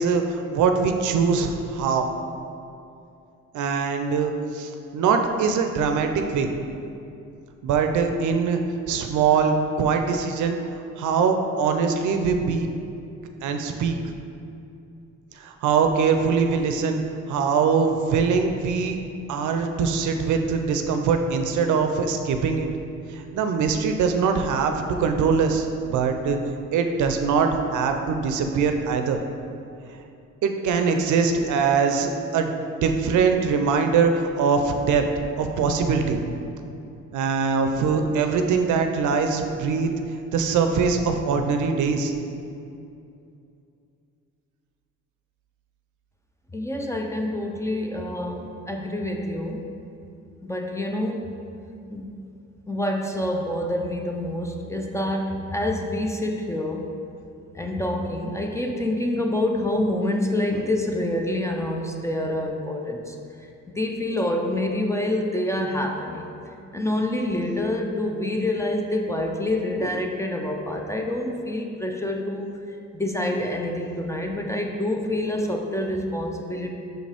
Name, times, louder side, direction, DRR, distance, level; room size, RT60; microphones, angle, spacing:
voice 1, 0.0-2.1 3.5-6.5 7.6-8.6 8.9-10.6 11.0-12.7 13.4-14.0 15.4-17.0 17.3-19.0 19.3-22.7 23.1-26.4 26.7-29.2 30.4-32.5 32.8-35.0 35.4-36.2 37.1-39.9 40.3-42.1, right 5 dB, 75° right, 5 dB, 0.6 m, -22 dB
voice 2, 46.5-49.7 50.4-51.3 51.9-52.1 52.7-56.9 57.5-63.2 63.7-66.2 66.7-72.5 72.9-76.7, left 1 dB, 10° left, 2 dB, 0.5 m, -27 dB
5.9 x 5.2 x 3.4 m, 2.6 s
cardioid pair, 90°, 30 cm